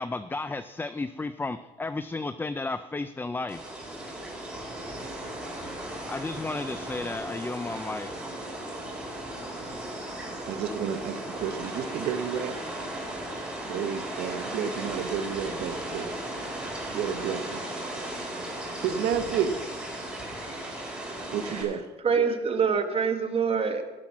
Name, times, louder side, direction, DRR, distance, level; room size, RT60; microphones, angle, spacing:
voice 1, 0.0-3.6 6.1-8.1, left 3 dB, 10° left, 12 dB, 0.4 m, -33 dB
sound 1, 3.5-21.6, right 1 dB, 5° right, 4.4 m, -36 dB
voice 2, 10.5-12.6 13.6-16.1 16.9-17.6 18.1-19.5 21.3-21.9, right 8 dB, 75° right, 8 dB, 1.1 m, -31 dB
voice 3, 22.0-23.8, right 6 dB, 35° right, 6 dB, 1.5 m, -25 dB
17.5 x 5.9 x 6.2 m, 1.2 s
cardioid pair, 110°, 17 cm